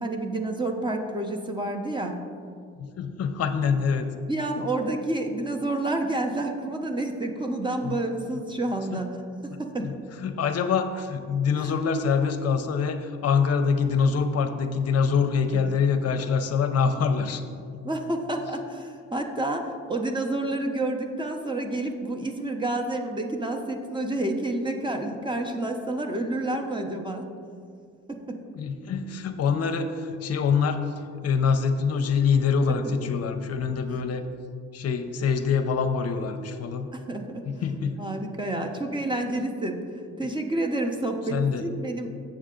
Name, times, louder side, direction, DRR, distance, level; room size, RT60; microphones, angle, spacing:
voice 1, 0.0-2.2 4.3-9.2 9.4-9.9 11.6-11.8 17.8-27.3 28.1-28.4 36.9-37.5 38.0-39.8 40.2-42.2, right 2 dB, 15° right, 3 dB, 0.7 m, -29 dB
voice 2, 2.8-4.1 7.8-8.0 8.9-9.0 9.5-17.4 17.7-17.8 28.5-30.9 31.2-34.2 34.7-36.9 37.4-38.0 41.3-41.6, left 6 dB, 55° left, 7 dB, 0.6 m, -25 dB
7.4 x 6.5 x 3.7 m, 2.3 s
cardioid pair, 90°, 30 cm